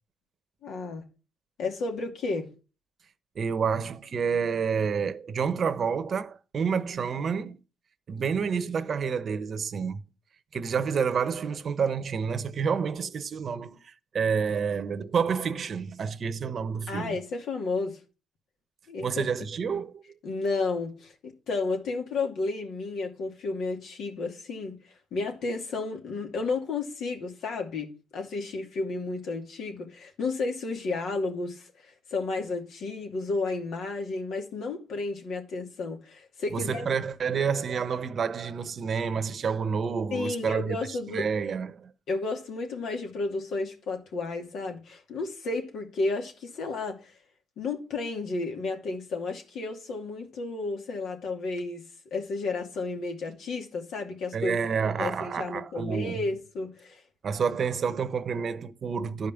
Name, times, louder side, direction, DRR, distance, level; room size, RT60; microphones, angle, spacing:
voice 1, 0.6-1.0 1.6-2.5 16.9-18.0 18.9-19.3 20.2-24.8 25.1-27.9 28.1-36.9 40.1-41.3 42.1-47.1 47.6-54.6 55.0-57.0, left 3 dB, 75° left, 2.7 m, -32 dB
voice 2, 3.3-7.6 8.1-10.0 10.5-17.2 19.0-20.0 36.5-40.8 41.1-41.9 54.3-56.2 57.2-59.3, right 6 dB, 50° right, 1.0 m, -29 dB
11.5 x 5.2 x 7.1 m
cardioid pair, 90°, 0 cm